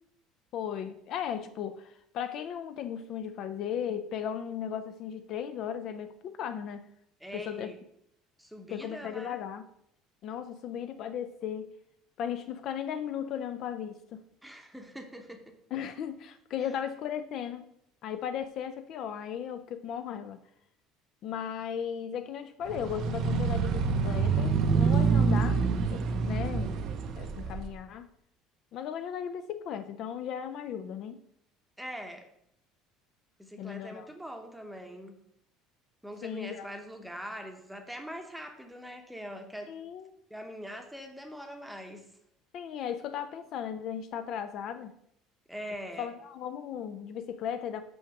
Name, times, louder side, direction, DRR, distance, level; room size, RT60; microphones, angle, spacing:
voice 1, 0.5-6.8 7.3-7.7 8.7-9.6 10.2-11.7 12.2-14.2 15.7-17.6 18.0-20.4 21.2-25.6 25.9-26.8 27.1-28.1 28.7-31.2 33.6-34.1 36.2-36.7 39.7-40.1 42.5-45.0 46.0-47.8, left 8 dB, 45° left, 9 dB, 0.5 m, -36 dB
voice 2, 7.2-7.8 8.4-9.4 14.4-15.6 31.8-32.3 33.4-35.2 36.0-39.7 40.3-42.1 45.5-46.1, equal, ahead, 5 dB, 0.9 m, -42 dB
sound 1, 22.7-27.6, right 5 dB, 45° right, 0.7 m, -27 dB
6.2 x 5.8 x 5.8 m, 0.75 s
cardioid pair, 160°, 0 cm